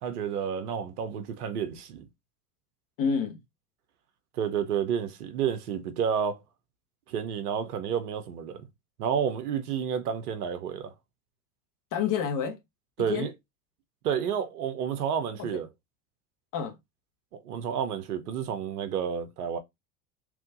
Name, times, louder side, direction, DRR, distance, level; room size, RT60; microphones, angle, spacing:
voice 1, 0.0-2.1 4.3-6.4 7.1-8.6 9.0-10.9 13.0-13.3 14.0-15.7 17.4-19.6, right 8 dB, 75° right, 0.9 m, -30 dB
voice 2, 3.0-3.4 11.9-12.6 13.0-13.3 15.4-15.5 16.5-16.7, left 7 dB, 45° left, 1.3 m, -28 dB
3.5 x 3.1 x 3.8 m
hypercardioid pair, 75°, 46 cm